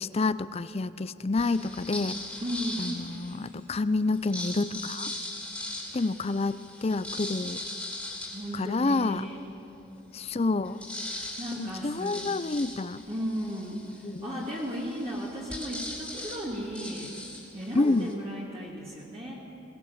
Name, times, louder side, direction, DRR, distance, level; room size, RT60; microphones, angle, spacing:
voice 1, 0.0-2.2 2.8-5.1 5.9-7.6 8.5-9.3 10.1-10.8 11.6-13.0 14.0-14.5 17.7-18.1, left 3 dB, 30° left, 15 dB, 0.5 m, -28 dB
sound 1, 1.4-3.5 4.1-9.3 9.8-9.9 10.1-18.1, left 1 dB, 5° left, 2.8 m, -40 dB
voice 2, 2.4-2.9 8.3-9.4 11.1-12.3 13.1-17.1 17.5-19.3, equal, 30° right, -5 dB, 2.4 m, -35 dB
22.0 x 18.5 x 7.2 m, 2.9 s
head